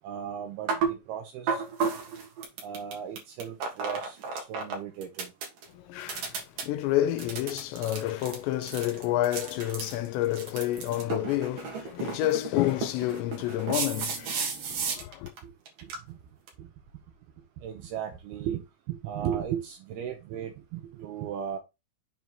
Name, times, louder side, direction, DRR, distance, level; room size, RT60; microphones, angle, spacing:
voice 1, 0.0-1.6 2.6-5.3 15.8-16.2 16.6-16.7 17.6-18.6 18.9-21.6, right 9 dB, 75° right, 2.5 m, -36 dB
sound 1, 0.7-0.9 1.5-4.7 5.0-5.6 6.0-6.6 7.2-15.4 15.7-16.0 16.5-16.6, right 5 dB, 55° right, 3.1 m, -32 dB
voice 2, 5.7-15.3, left 14 dB, 90° left, 2.9 m, -29 dB
7.4 x 4.0 x 4.5 m
omnidirectional pair, 5.2 m